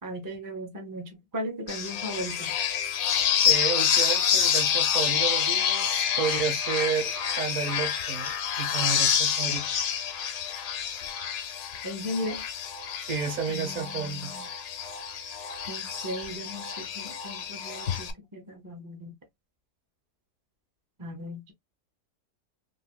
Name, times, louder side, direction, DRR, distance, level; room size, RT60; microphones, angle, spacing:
voice 1, 0.0-2.6 11.8-12.4 13.5-14.5 15.7-19.2 21.0-21.5, equal, 35° right, 0.3 m, -37 dB
sound 1, 1.7-18.1, left 8 dB, 90° left, 1.2 m, -28 dB
voice 2, 3.4-9.7 13.0-14.3, right 6 dB, 55° right, 1.5 m, -31 dB
3.4 x 2.6 x 2.3 m
omnidirectional pair, 1.7 m